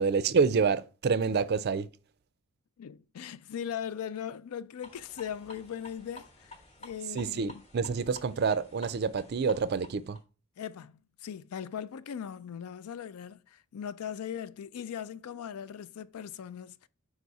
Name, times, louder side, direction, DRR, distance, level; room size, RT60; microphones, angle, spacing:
voice 1, 0.0-1.9 7.1-10.2, right 5 dB, 45° right, 0.4 m, -27 dB
voice 2, 2.8-7.6 10.6-10.9 11.2-16.9, left 8 dB, 80° left, 0.4 m, -39 dB
sound 1, 4.8-10.2, left 2 dB, 30° left, 1.0 m, -51 dB
5.0 x 4.0 x 4.7 m
head